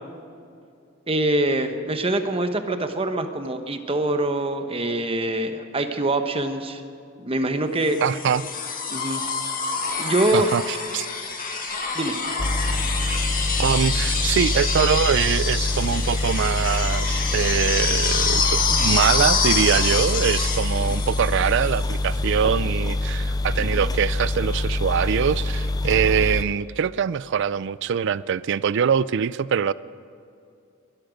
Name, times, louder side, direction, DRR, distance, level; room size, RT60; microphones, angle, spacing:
voice 1, 1.1-6.8 7.2-8.0 8.9-9.2 10.0-10.5 11.9-12.1 23.6-23.8, right 1 dB, 30° right, 7 dB, 1.0 m, -24 dB
sound 1, 7.9-21.9 23.4-23.5, left 5 dB, 45° left, 1.8 m, -26 dB
voice 2, 8.0-8.5 10.3-11.1 13.6-29.7, right 7 dB, 60° right, 19 dB, 0.4 m, -23 dB
sound 2, 12.4-26.4, left 2 dB, 20° left, 0.5 m, -25 dB
22.0 x 13.0 x 5.2 m, 2.5 s
head